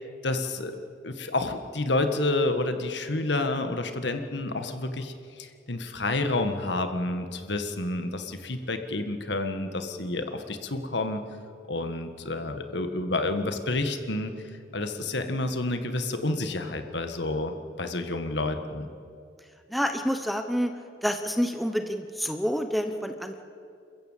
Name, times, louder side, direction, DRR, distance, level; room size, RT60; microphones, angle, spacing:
voice 1, 0.2-0.8 1.0-11.2 11.7-14.3 14.7-18.9, left 2 dB, 65° left, 7 dB, 1.8 m, -29 dB
voice 2, 19.7-20.7 21.0-23.4, equal, ahead, 6 dB, 1.0 m, -28 dB
28.5 x 15.0 x 7.5 m, 2.4 s
head